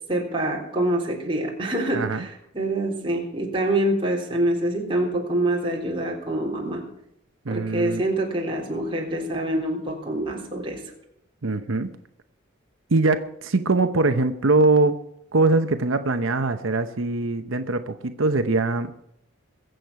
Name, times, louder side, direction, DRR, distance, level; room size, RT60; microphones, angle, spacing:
voice 1, 0.1-6.8 7.5-10.8, right 1 dB, 25° right, -1 dB, 3.7 m, -26 dB
voice 2, 1.9-2.3 7.4-8.0 11.4-11.9 12.9-15.0 15.3-18.9, right 3 dB, 90° right, 8 dB, 0.9 m, -22 dB
22.0 x 8.0 x 5.8 m, 0.78 s
head